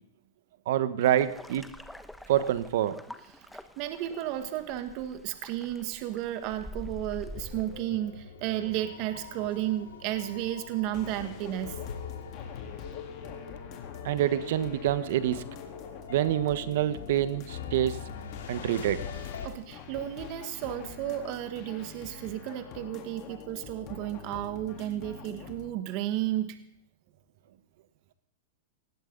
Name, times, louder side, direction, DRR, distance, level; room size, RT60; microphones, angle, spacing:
voice 1, 0.7-1.7 2.3-3.0 14.0-15.4 16.1-18.1 18.5-19.0, right 12 dB, 65° right, 12 dB, 1.3 m, -26 dB
sound 1, 1.0-7.8, left 1 dB, 5° left, 1.1 m, -46 dB
voice 2, 3.8-11.8 19.4-26.6, right 13 dB, 45° right, 8 dB, 1.7 m, -33 dB
sound 2, 7.3-19.5, left 7 dB, 80° left, 2.9 m, -43 dB
sound 3, 10.9-25.7, left 6 dB, 40° left, 3.7 m, -45 dB
19.0 x 16.0 x 4.1 m, 0.71 s
hypercardioid pair, 125°, 0 cm